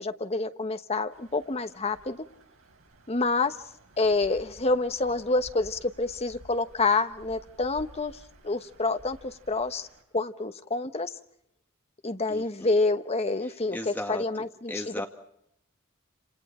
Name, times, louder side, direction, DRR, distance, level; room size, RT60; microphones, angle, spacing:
voice 1, 0.0-2.2 3.1-3.6 4.0-8.1 8.4-9.9 10.1-11.1 12.0-15.0, left 3 dB, 30° left, 8 dB, 1.1 m, -28 dB
sound 1, 1.1-10.0, right 1 dB, 85° right, 5.8 m, -53 dB
voice 2, 12.3-12.7 13.7-15.1, left 1 dB, 10° left, 3 dB, 2.1 m, -37 dB
29.5 x 27.5 x 4.4 m, 0.75 s
head